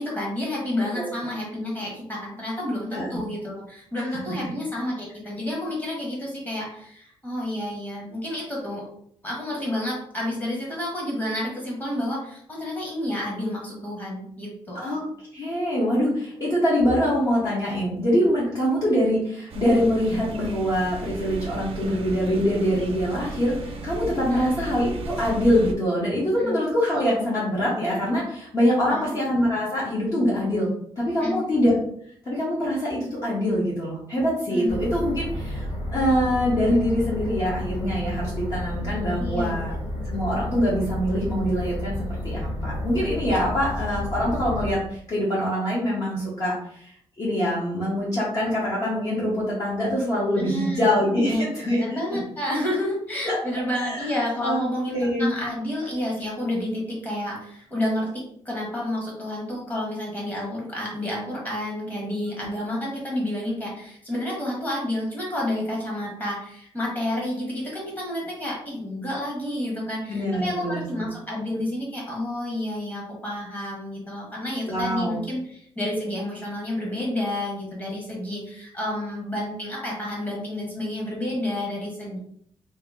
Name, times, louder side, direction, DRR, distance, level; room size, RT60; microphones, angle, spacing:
voice 1, 0.0-8.8 9.2-14.8 24.3-24.6 26.4-26.6 28.9-29.1 31.2-31.4 34.5-34.8 39.2-39.9 50.4-51.4 51.7-82.2, left 1 dB, 15° left, -3 dB, 1.2 m, -30 dB
voice 2, 15.3-30.7 31.0-31.7 32.2-39.7 40.1-51.8 52.1-52.2 53.2-53.4 53.8-54.1 54.4-54.6 54.9-55.3 70.1-71.1 74.7-75.2, equal, 35° left, -6 dB, 0.9 m, -24 dB
sound 1, 19.5-25.7, right 2 dB, 70° right, 0.6 m, -35 dB
sound 2, 34.7-44.7, left 1 dB, 75° left, 1.1 m, -31 dB
2.9 x 2.8 x 3.6 m, 0.66 s
wide cardioid pair, 175°, 10 cm